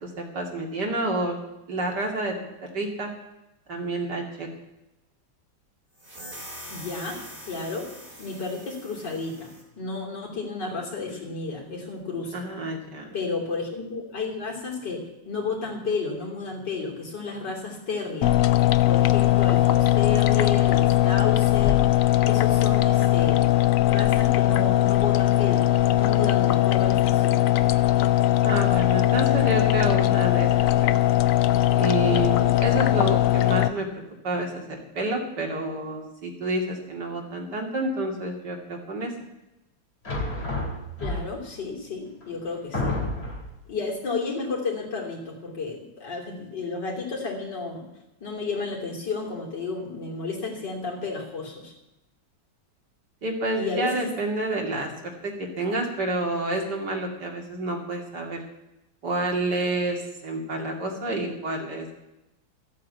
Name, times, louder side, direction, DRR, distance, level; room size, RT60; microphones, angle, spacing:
voice 1, 0.0-1.4 1.7-2.3 2.6-3.1 3.7-4.5 12.3-13.1 28.4-31.1 31.8-33.9 34.2-39.1 53.2-58.4 59.0-61.9, right 2 dB, 60° right, 1 dB, 2.9 m, -29 dB
sound 1, 6.0-9.7, equal, 25° right, 4.0 m, -43 dB
voice 2, 6.7-7.9 8.2-12.4 13.1-18.4 18.9-21.8 22.2-23.5 23.8-27.4 41.0-42.9 43.7-47.9 48.2-51.7 53.5-54.1, left 4 dB, 65° left, -1 dB, 3.8 m, -32 dB
sound 2, 18.2-33.7, left 14 dB, 80° left, 0.7 m, -20 dB
sound 3, 40.0-41.6 42.2-42.3 42.7-43.6, left 2 dB, 30° left, 2.9 m, -29 dB
14.0 x 8.5 x 8.3 m, 0.93 s
omnidirectional pair, 2.1 m